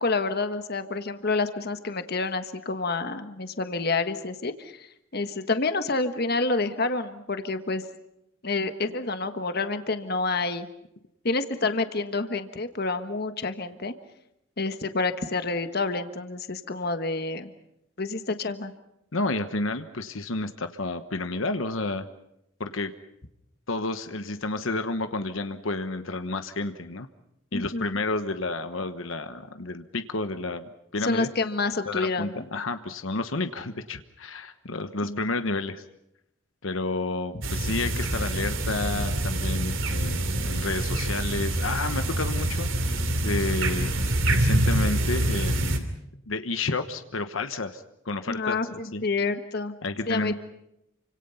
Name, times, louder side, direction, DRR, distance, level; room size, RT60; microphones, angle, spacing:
voice 1, 0.0-4.9 5.1-7.8 8.4-10.7 11.2-13.9 14.6-17.5 18.0-18.7 27.5-27.9 31.0-32.4 35.0-35.3 48.3-49.7 50.1-50.3, left 3 dB, 50° left, 9 dB, 1.5 m, -28 dB
voice 2, 19.1-22.1 22.6-22.9 23.7-27.1 27.5-31.3 31.9-35.8 36.6-43.9 44.3-45.9 46.3-48.6 48.9-49.0 49.8-50.3, left 3 dB, 80° left, 9 dB, 1.2 m, -30 dB
sound 1, 37.4-45.8, right 1 dB, 80° right, 2.9 m, -26 dB
28.5 x 26.0 x 5.7 m, 0.82 s
head